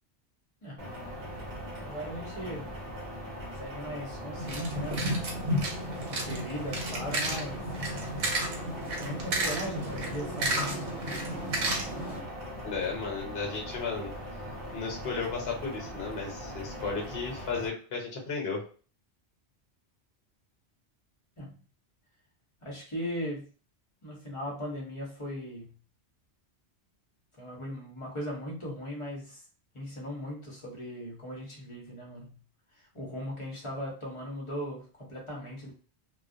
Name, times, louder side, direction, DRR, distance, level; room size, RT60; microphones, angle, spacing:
sound 1, 0.8-17.7, equal, 60° right, 0.9 m, -40 dB
voice 1, 1.8-2.7 3.5-5.1 5.9-7.7 9.0-10.6 21.4-21.6 22.6-23.5 24.0-25.8 27.4-29.4 29.7-32.4 32.9-35.7, equal, 30° left, -3 dB, 0.8 m, -38 dB
sound 2, 4.4-12.2, right 1 dB, 85° right, 1.0 m, -32 dB
voice 2, 12.6-14.1 14.7-18.6, left 4 dB, 65° left, 0 dB, 1.0 m, -34 dB
2.3 x 2.1 x 2.6 m, 0.39 s
omnidirectional pair, 1.1 m